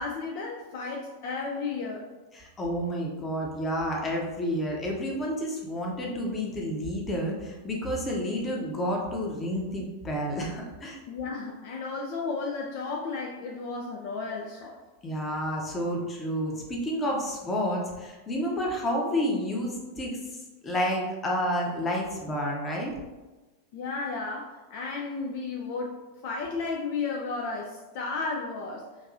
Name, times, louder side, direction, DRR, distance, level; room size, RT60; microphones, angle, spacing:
voice 1, 0.0-2.0 11.1-14.8 23.7-28.9, left 4 dB, 50° left, 0 dB, 0.4 m, -33 dB
voice 2, 2.3-11.0 14.6-14.7 15.0-22.9, equal, 20° left, -1 dB, 0.9 m, -30 dB
5.1 x 2.8 x 2.5 m, 1.2 s
figure-of-eight pair, 90°, 0 cm